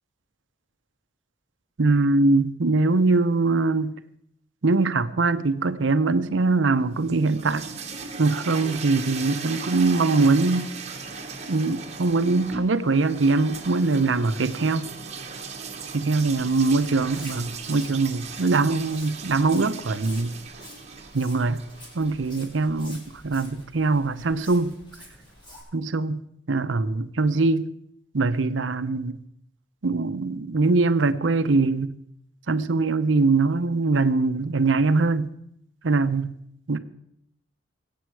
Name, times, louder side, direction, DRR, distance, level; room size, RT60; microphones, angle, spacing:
voice 1, 1.8-3.9 4.6-7.7 8.2-10.7 11.5-14.9 15.9-20.4 21.1-21.6 21.9-24.7 25.7-26.2 26.5-27.7 28.1-29.2 29.8-31.9 32.5-35.3 35.8-36.3 36.7-36.8, right 3 dB, 90° right, 12 dB, 0.7 m, -22 dB
sound 1, 6.9-22.9, right 5 dB, 35° right, 1.4 m, -38 dB
Walk footsteps, 16.2-25.6, equal, 25° left, 3.8 m, -48 dB
20.5 x 8.7 x 4.7 m, 0.74 s
head